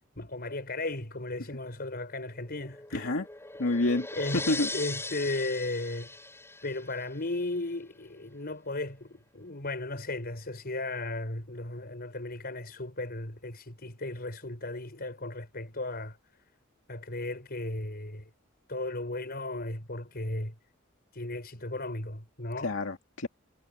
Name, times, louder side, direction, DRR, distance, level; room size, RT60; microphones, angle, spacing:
voice 1, 0.2-3.1 4.1-4.4 4.7-6.1 6.6-16.2 16.9-18.3 18.7-20.5 21.1-22.8, left 2 dB, 50° left, 5.3 m, -35 dB
sound 1, 2.3-7.4, left 2 dB, 10° left, 5.8 m, -40 dB
voice 2, 2.9-3.2 3.6-4.1 4.3-4.7 22.6-23.3, left 2 dB, 70° left, 2.1 m, -28 dB
head